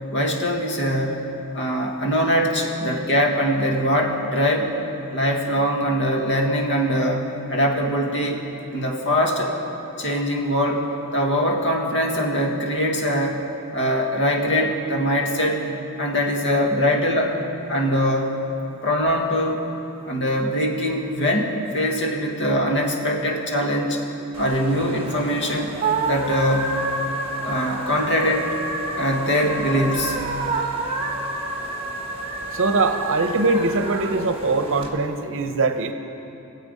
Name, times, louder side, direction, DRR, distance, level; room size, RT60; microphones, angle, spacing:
voice 1, 0.1-1.2 1.5-4.7 5.1-8.4 8.7-9.6 10.0-13.4 13.7-15.7 16.0-17.4 17.7-18.4 18.8-19.6 20.1-24.0 24.4-25.8 26.1-26.8 27.4-28.5 29.0-30.2, equal, 55° left, 1 dB, 1.6 m, -22 dB
sound 1, 24.3-34.9, right 2 dB, 25° right, 1.3 m, -29 dB
voice 2, 32.5-35.9, right 3 dB, 60° right, 7 dB, 0.8 m, -22 dB
20.5 x 7.9 x 5.3 m, 2.9 s
head